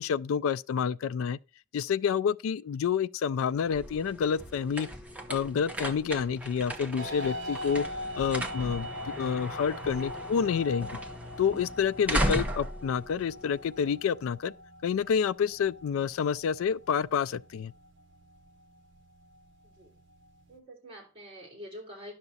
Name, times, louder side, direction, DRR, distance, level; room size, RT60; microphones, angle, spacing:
voice 1, 0.0-1.4 1.7-4.9 5.3-7.8 8.2-11.0 11.4-14.5 14.8-17.7, left 7 dB, 80° left, 0.3 m, -28 dB
sound 1, 3.4-14.1, right 1 dB, 5° right, 0.9 m, -36 dB
sound 2, 7.0-20.6, left 1 dB, 60° right, 1.0 m, -43 dB
voice 2, 19.6-19.9 20.5-22.1, equal, 25° right, 3.4 m, -46 dB
11.0 x 5.9 x 4.0 m
head